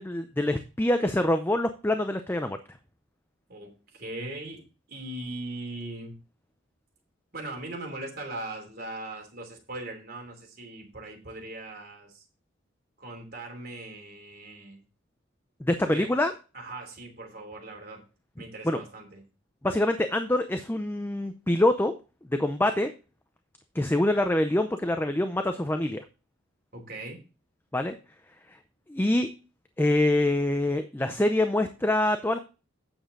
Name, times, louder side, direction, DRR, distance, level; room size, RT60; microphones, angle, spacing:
voice 1, 0.0-2.6 15.6-16.3 18.6-18.8 19.6-21.9 22.3-22.9 23.7-26.0 27.7-28.0 28.9-29.3 29.8-32.4, left 1 dB, 10° left, 8 dB, 0.5 m, -25 dB
voice 2, 3.5-6.1 7.3-12.2 13.0-14.8 15.9-16.1 16.5-18.0 18.4-19.2 26.7-27.2, right 2 dB, 50° right, 2 dB, 3.1 m, -39 dB
8.9 x 7.1 x 3.8 m, 0.32 s
head